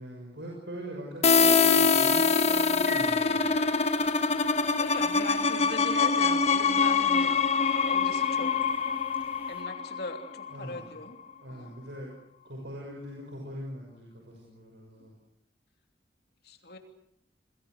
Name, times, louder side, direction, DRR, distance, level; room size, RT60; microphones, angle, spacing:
voice 1, 0.0-3.4 10.5-10.8 11.4-12.1 12.4-15.1, equal, 75° right, -1 dB, 6.5 m, -42 dB
sound 1, 1.2-10.8, left 5 dB, 35° left, 1.3 m, -24 dB
sound 2, 2.4-9.6, left 4 dB, 10° right, 6.7 m, -45 dB
voice 2, 4.8-8.5 9.5-11.2 11.5-11.8 16.4-16.8, left 2 dB, 60° left, 5 dB, 3.1 m, -40 dB
28.5 x 21.0 x 6.5 m, 0.70 s
head